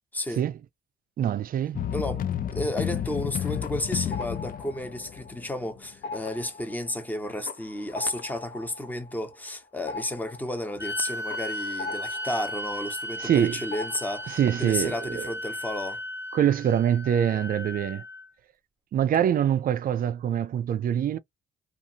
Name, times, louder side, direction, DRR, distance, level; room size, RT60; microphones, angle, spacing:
voice 1, 0.1-0.4 1.9-2.2 2.5-16.0, left 1 dB, 10° left, 0.9 m, -32 dB
voice 2, 1.2-1.8 13.2-13.6 14.3-15.3 16.3-18.0 18.9-21.2, right 9 dB, 45° right, 0.4 m, -24 dB
sound 1, 1.7-5.8, left 9 dB, 45° left, 0.4 m, -31 dB
sound 2, 3.2-5.6 5.9-13.4 13.7-14.5, left 4 dB, 75° left, 0.9 m, -42 dB
sound 3, 10.8-18.3, equal, 15° right, 0.7 m, -36 dB
2.6 x 2.5 x 2.7 m
cardioid pair, 90°, 20 cm